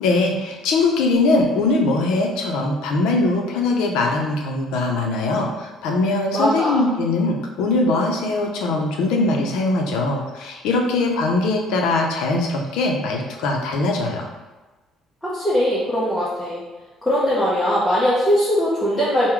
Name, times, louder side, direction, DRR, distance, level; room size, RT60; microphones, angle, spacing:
voice 1, 0.0-14.3, left 2 dB, 85° left, 1 dB, 0.6 m, -21 dB
voice 2, 6.3-6.9 15.2-16.6 17.0-19.3, equal, 5° left, -9 dB, 0.7 m, -20 dB
3.8 x 2.2 x 4.5 m, 1.2 s
cardioid pair, 175°, 0 cm